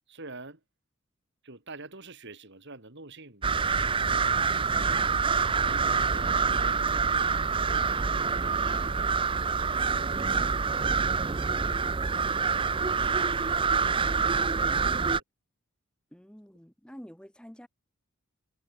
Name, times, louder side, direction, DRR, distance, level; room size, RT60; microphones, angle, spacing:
voice 1, 0.1-0.6 1.4-10.9 12.6-14.0, right 3 dB, 50° right, 2.9 m, -49 dB
sound 1, 3.4-15.2, right 5 dB, 25° right, 0.5 m, -26 dB
voice 2, 11.5-11.8 14.3-14.5 14.9-15.1 16.1-17.7, equal, 5° left, 2.1 m, -48 dB
head